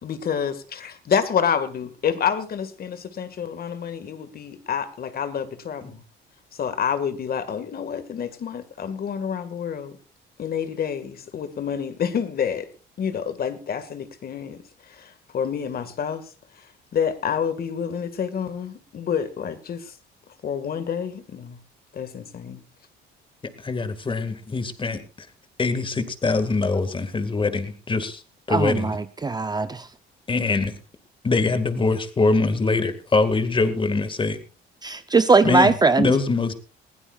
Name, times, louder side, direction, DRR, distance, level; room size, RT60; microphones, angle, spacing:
voice 1, 0.0-6.0 6.6-10.0 10.4-12.7 13.0-14.6 14.9-16.2 16.9-19.9 20.4-21.6 21.9-22.6, left 7 dB, 45° left, 2.0 m, -28 dB
voice 2, 23.6-25.3 25.6-28.2 28.5-28.9 30.3-30.7 31.2-34.4 35.4-36.5, left 3 dB, 25° left, 2.0 m, -23 dB
voice 3, 28.5-29.9 34.8-36.1, right 4 dB, 20° right, 0.7 m, -20 dB
20.5 x 16.0 x 2.5 m
cardioid pair, 105°, 21 cm